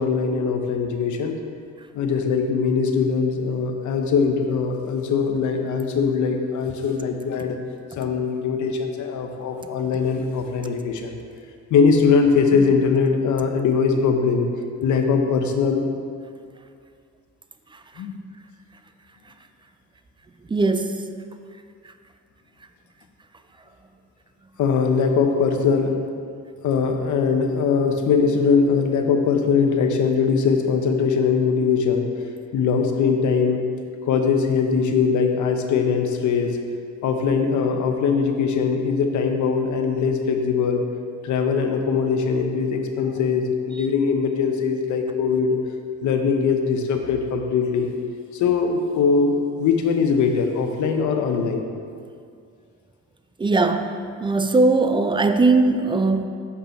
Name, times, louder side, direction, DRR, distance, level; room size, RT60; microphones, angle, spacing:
voice 1, 0.0-1.4 1.9-7.6 8.0-11.2 11.7-14.5 14.8-15.8 18.0-18.1 24.6-25.9 26.6-32.1 32.5-33.6 34.1-36.6 37.0-40.9 41.2-45.6 46.0-47.9 48.3-51.6, left 5 dB, 75° left, 4 dB, 0.8 m, -21 dB
voice 2, 20.5-21.0 53.4-56.3, right 3 dB, 15° right, 8 dB, 0.4 m, -19 dB
6.8 x 5.2 x 4.4 m, 2.3 s
cardioid pair, 90°, 30 cm